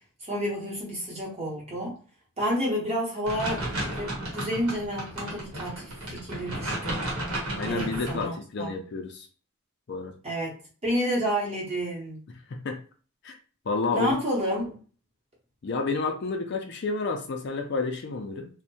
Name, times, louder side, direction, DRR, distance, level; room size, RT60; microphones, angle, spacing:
voice 1, 0.2-2.0 2.4-7.0 7.7-8.8 10.2-12.2 13.9-14.8, equal, 30° right, -3 dB, 0.9 m, -30 dB
sound 1, 3.2-8.2, right 1 dB, 75° right, 0.9 m, -33 dB
voice 2, 7.6-9.3 9.9-10.1 12.5-12.8 13.2-13.4 13.7-14.2 15.6-18.5, left 3 dB, 50° left, 4 dB, 0.4 m, -30 dB
2.7 x 2.1 x 2.7 m, 0.39 s
head